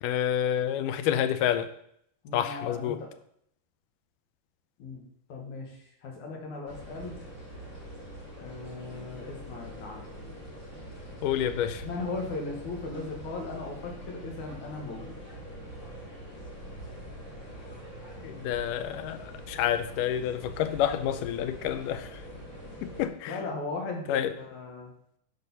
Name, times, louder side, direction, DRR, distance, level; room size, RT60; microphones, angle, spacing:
voice 1, 0.0-1.7 2.3-3.0 11.2-11.8 18.2-22.2 22.8-23.4 24.1-24.3, left 10 dB, 85° left, 11 dB, 2.3 m, -29 dB
voice 2, 2.2-3.1 4.8-5.0 5.3-7.1 8.4-10.1 11.8-15.2 23.3-24.9, left 3 dB, 65° left, 1 dB, 2.9 m, -37 dB
sound 1, 6.7-23.1, equal, 15° left, 3.7 m, -43 dB
11.0 x 5.2 x 5.4 m, 0.70 s
omnidirectional pair, 3.7 m